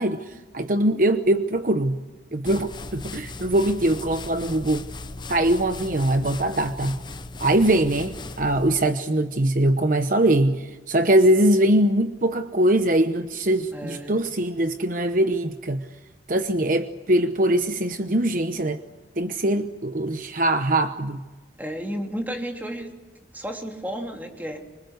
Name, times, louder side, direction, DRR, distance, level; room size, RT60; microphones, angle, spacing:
voice 1, 0.0-2.0 2.3-4.8 5.3-7.0 7.4-15.8 16.3-18.8 19.2-21.2, right 1 dB, 45° right, 9 dB, 0.9 m, -22 dB
sound 1, 2.5-9.0, left 2 dB, 25° left, 0.9 m, -38 dB
voice 2, 13.7-14.2 21.6-22.9 23.3-24.6, equal, 10° right, 2 dB, 3.1 m, -32 dB
25.5 x 25.0 x 8.1 m, 1.2 s
head